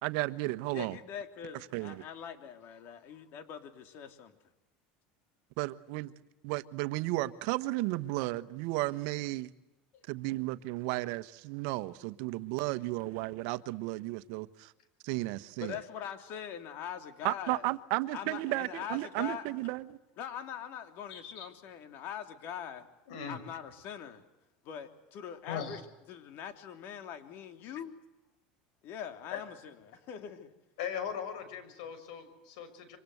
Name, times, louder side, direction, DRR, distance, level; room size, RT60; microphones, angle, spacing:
voice 1, 0.0-1.0 1.7-2.0 5.6-6.1 6.4-9.5 10.1-14.7 15.0-15.8 17.2-20.0, right 19 dB, 70° right, 1.3 m, -34 dB
voice 2, 0.7-4.4 9.9-10.0 15.6-17.6 18.1-19.5 20.2-22.9 23.3-24.2 24.6-25.8 26.1-27.9 28.8-30.5, left 8 dB, 55° left, 3.4 m, -42 dB
voice 3, 21.1-21.5 23.1-23.4 25.4-25.8 29.3-29.4 30.8-33.0, left 7 dB, 80° left, 6.1 m, -39 dB
26.5 x 25.0 x 8.1 m
supercardioid pair, 110°, 4 cm